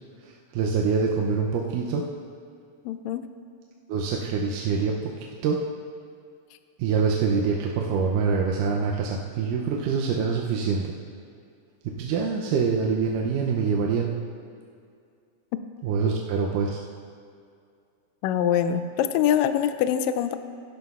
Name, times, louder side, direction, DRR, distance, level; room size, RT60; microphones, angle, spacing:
voice 1, 0.5-2.0 3.9-5.1 5.4-5.6 6.8-10.9 11.8-14.1 15.8-16.8, right 5 dB, 85° right, -1 dB, 2.2 m, -25 dB
voice 2, 2.8-3.2 18.2-20.4, left 9 dB, 85° left, 10 dB, 1.5 m, -24 dB
16.5 x 11.5 x 2.4 m, 2.3 s
omnidirectional pair, 3.7 m